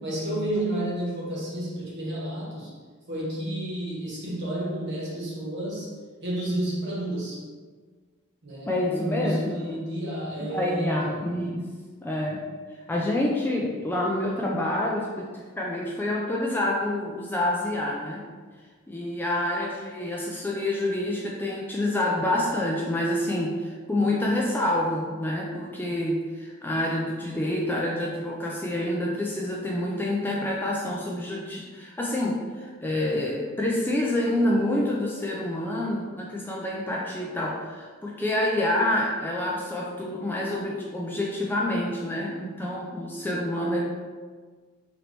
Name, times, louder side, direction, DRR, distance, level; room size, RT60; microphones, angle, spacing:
voice 1, 0.0-2.7 3.1-5.9 6.2-7.4 8.4-11.4, right 1 dB, 50° right, -6 dB, 1.2 m, -31 dB
voice 2, 8.7-9.8 10.5-11.6 12.0-12.4 12.9-15.2 15.6-18.2 18.9-43.8, left 1 dB, 10° left, -3 dB, 0.3 m, -27 dB
3.9 x 2.9 x 3.3 m, 1.5 s
head